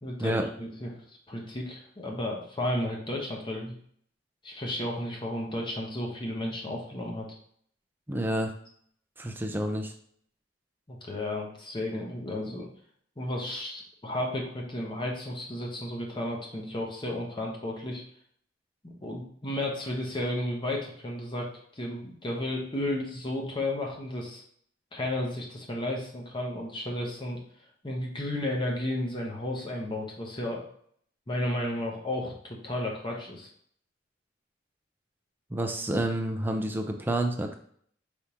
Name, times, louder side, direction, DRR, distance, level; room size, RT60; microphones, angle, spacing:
voice 1, 0.0-3.7 4.4-7.2 10.9-12.7 13.2-18.0 18.8-24.4 24.9-27.4 27.8-30.6 31.3-33.5, left 1 dB, 25° left, -1 dB, 0.8 m, -33 dB
voice 2, 8.1-8.5 9.2-9.9 35.5-37.5, right 1 dB, 10° right, 3 dB, 0.5 m, -29 dB
4.9 x 3.5 x 2.9 m, 0.63 s
head